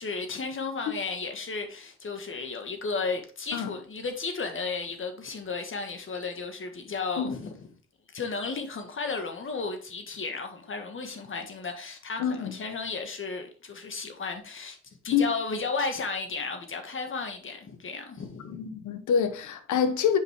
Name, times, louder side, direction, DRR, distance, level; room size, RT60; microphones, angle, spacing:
voice 1, 0.0-7.7 8.1-14.8 15.0-18.8, left 4 dB, 40° left, 1.7 m, -34 dB
voice 2, 12.2-12.5 15.1-15.3 18.5-20.2, left 7 dB, 75° left, 1.1 m, -26 dB
7.2 x 5.3 x 3.6 m
cardioid pair, 90°, 30 cm